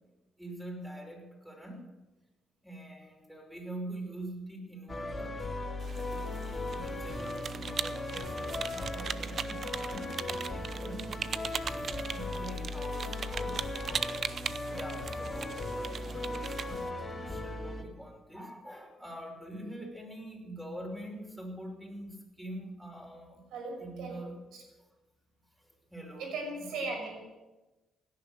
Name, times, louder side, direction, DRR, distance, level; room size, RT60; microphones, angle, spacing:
voice 1, 0.4-1.9 2.6-5.4 6.1-14.1 14.7-23.4 23.8-24.4 25.9-26.4 26.7-26.9, right 1 dB, 5° right, 0 dB, 5.7 m, -44 dB
sound 1, 4.9-17.8, left 2 dB, 25° left, 2.8 m, -37 dB
sound 2, 5.8-16.9, right 6 dB, 50° right, 0.7 m, -39 dB
voice 2, 23.5-24.6 26.2-27.4, right 3 dB, 85° right, 2 dB, 6.2 m, -38 dB
17.0 x 10.5 x 7.9 m, 1.1 s
cardioid pair, 90°, 0 cm